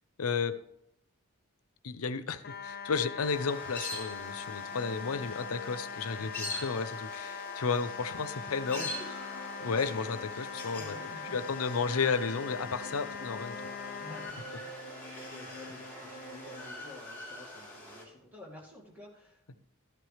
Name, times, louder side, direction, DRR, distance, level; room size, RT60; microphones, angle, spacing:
voice 1, 0.2-0.6 1.8-8.9 9.6-11.0 11.3-13.7, left 5 dB, 85° left, 13 dB, 0.6 m, -33 dB
sound 1, 2.4-14.3, left 6 dB, 45° left, 0.6 m, -41 dB
sound 2, 3.2-18.0, left 2 dB, 10° left, 3.6 m, -44 dB
sound 3, 8.6-17.1, right 1 dB, 40° right, 1.8 m, -48 dB
voice 2, 8.7-9.2 10.7-11.5 14.0-19.6, left 1 dB, 10° right, -3 dB, 2.1 m, -51 dB
13.5 x 9.3 x 3.3 m, 0.78 s
head